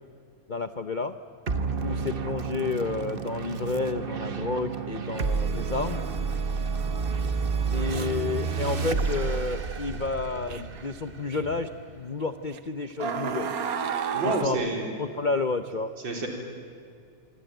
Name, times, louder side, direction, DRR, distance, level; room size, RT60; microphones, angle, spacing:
voice 1, 0.5-1.2 1.8-6.0 7.7-11.7 12.0-13.5 14.2-14.6 15.0-15.9, left 4 dB, 85° left, 10 dB, 0.4 m, -30 dB
sound 1, 1.5-12.2, right 5 dB, 35° right, 1.2 m, -30 dB
sound 2, 9.5-9.6 10.5-10.8 11.3-11.4 12.5-12.6 13.0-14.5, right 7 dB, 55° right, 1.5 m, -30 dB
voice 2, 14.1-14.9 16.0-16.3, right 2 dB, 75° right, 1 dB, 4.8 m, -28 dB
25.0 x 25.0 x 9.1 m, 2.3 s
omnidirectional pair, 2.1 m